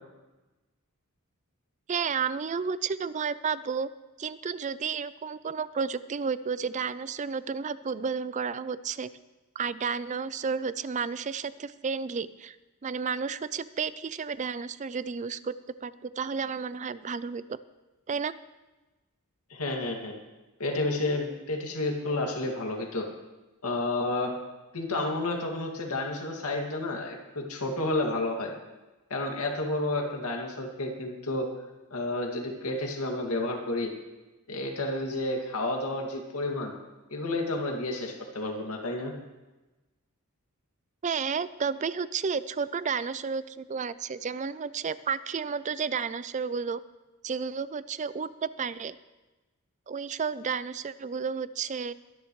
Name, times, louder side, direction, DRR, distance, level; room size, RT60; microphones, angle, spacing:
voice 1, 1.9-3.9 4.2-9.1 9.6-12.6 12.8-15.5 15.8-17.6 18.1-18.3 41.0-46.8 47.2-49.0 49.9-51.9, right 6 dB, 35° right, 16 dB, 0.4 m, -32 dB
voice 2, 19.5-20.2 20.6-23.1 23.6-24.3 24.7-28.5 29.1-31.5 31.9-33.9 34.5-36.7 37.1-39.1, left 2 dB, 85° left, 2 dB, 2.2 m, -30 dB
22.5 x 10.5 x 3.2 m, 1.1 s
head